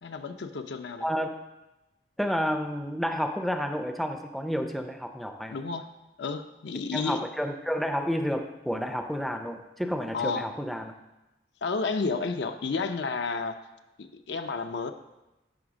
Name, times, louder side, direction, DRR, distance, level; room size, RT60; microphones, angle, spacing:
voice 1, 0.0-1.1 5.5-5.9 6.2-7.2 10.1-10.5 11.6-13.6 14.0-14.9, left 4 dB, 70° left, 7 dB, 0.6 m, -31 dB
voice 2, 1.0-1.3 2.2-5.6 6.9-10.9, equal, ahead, 6 dB, 0.5 m, -30 dB
10.0 x 3.5 x 6.2 m, 0.99 s
head